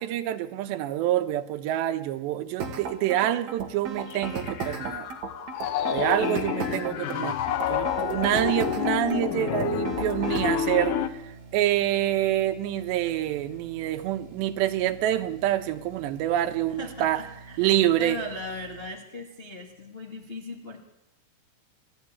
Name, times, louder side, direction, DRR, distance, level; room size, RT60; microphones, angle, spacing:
voice 1, 0.0-5.1 5.9-7.4 7.7-11.0 11.5-17.2 17.6-18.2, right 13 dB, 85° right, 9 dB, 3.3 m, -26 dB
sound 1, 2.6-10.6, right 5 dB, 50° right, 2.9 m, -35 dB
Piano, 4.1-11.1, left 9 dB, 80° left, 1.8 m, -29 dB
voice 2, 6.2-6.8 15.0-15.1 16.7-20.8, left 2 dB, 40° left, 0 dB, 0.8 m, -38 dB
sound 2, 7.7-18.9, right 3 dB, 70° right, 4.5 m, -48 dB
28.0 x 12.5 x 9.8 m, 0.95 s
omnidirectional pair, 4.9 m